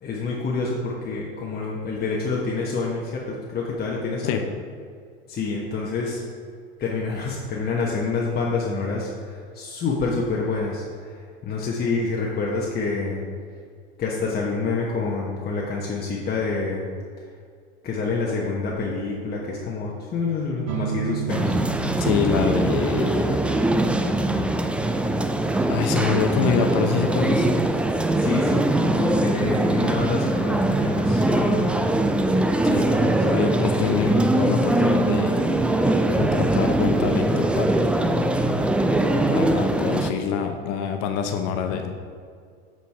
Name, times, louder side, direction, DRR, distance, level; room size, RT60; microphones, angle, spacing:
voice 1, 0.0-4.4 5.3-6.2 6.8-13.3 14.0-16.9 17.8-21.6 28.2-28.6 28.9-31.9 32.5-33.6, left 4 dB, 30° left, -3 dB, 1.1 m, -27 dB
sound 1, 20.7-28.3, right 9 dB, 65° right, 0.7 m, -36 dB
sound 2, 21.3-40.1, right 1 dB, 5° right, 0.4 m, -22 dB
voice 2, 22.0-23.4 25.7-27.5 32.6-32.9 33.2-35.4 36.1-37.9 39.3-42.1, left 7 dB, 55° left, 6 dB, 0.8 m, -25 dB
8.2 x 4.7 x 4.6 m, 2.2 s
hypercardioid pair, 80°, 32 cm